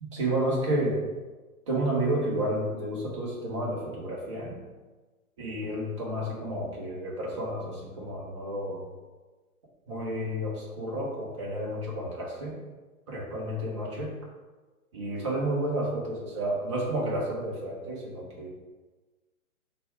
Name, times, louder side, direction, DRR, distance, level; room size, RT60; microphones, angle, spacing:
voice 1, 0.0-1.0 1.7-4.6 5.4-8.9 9.9-12.6 13.1-14.1 14.9-18.5, right 1 dB, 20° right, -4 dB, 0.6 m, -31 dB
4.1 x 2.3 x 4.4 m, 1.3 s
figure-of-eight pair, 125°, 44 cm